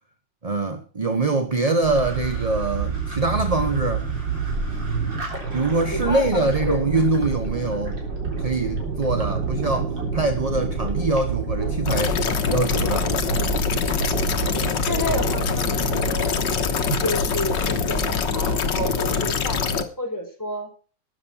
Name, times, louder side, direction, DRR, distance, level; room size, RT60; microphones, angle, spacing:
voice 1, 0.4-4.1 5.5-8.0 8.4-12.2 12.5-13.1, right 3 dB, 25° right, 0.9 m, -24 dB
sound 1, 1.8-19.6, right 4 dB, 75° right, 4.5 m, -28 dB
voice 2, 5.9-6.8 14.9-16.6 16.9-20.7, left 1 dB, 10° left, 4.7 m, -30 dB
sound 2, 11.9-19.8, left 6 dB, 80° left, 1.9 m, -24 dB
13.0 x 9.2 x 5.7 m
omnidirectional pair, 2.0 m